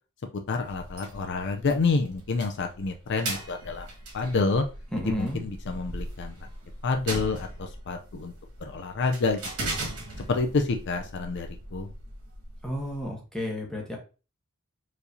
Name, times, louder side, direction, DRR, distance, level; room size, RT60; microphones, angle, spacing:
voice 1, 0.5-3.9 4.1-4.6 5.2-6.4 6.8-8.3 8.6-9.8 10.3-11.9, left 4 dB, 55° left, 4 dB, 0.5 m, -28 dB
sound 1, 0.6-13.0, right 2 dB, 85° right, 1.8 m, -39 dB
voice 2, 4.9-5.4 12.6-14.0, equal, 5° left, -1 dB, 1.2 m, -32 dB
4.6 x 3.2 x 2.7 m, 0.32 s
head